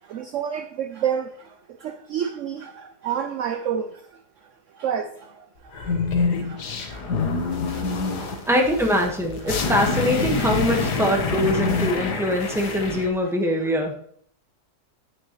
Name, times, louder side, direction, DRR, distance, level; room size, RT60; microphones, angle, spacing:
voice 1, 0.1-1.2 2.1-2.6 3.0-3.8 4.8-5.0, right 8 dB, 65° right, 0.8 m, -26 dB
sound 1, 5.7-13.1, left 4 dB, 80° left, 1.8 m, -26 dB
voice 2, 8.4-13.9, equal, ahead, 1.2 m, -23 dB
9.4 x 8.7 x 3.1 m
omnidirectional pair, 1.7 m